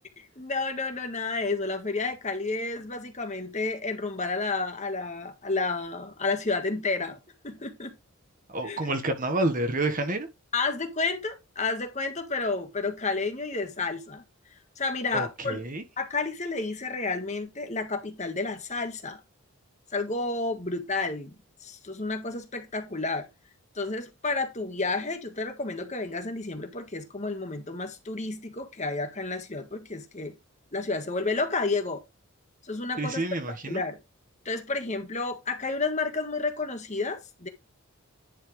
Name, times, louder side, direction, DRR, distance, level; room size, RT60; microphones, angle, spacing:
voice 1, 0.4-7.2 7.4-8.0 8.6-8.9 10.5-14.2 14.8-15.6 16.0-19.2 19.9-21.3 21.6-23.3 23.7-30.3 30.7-32.0 32.6-33.2 33.6-34.0 34.4-37.5, left 3 dB, 30° left, 1.5 m, -31 dB
voice 2, 8.5-10.3 15.1-15.8 33.0-33.8, right 2 dB, 35° right, 1.4 m, -29 dB
10.5 x 5.8 x 3.2 m
head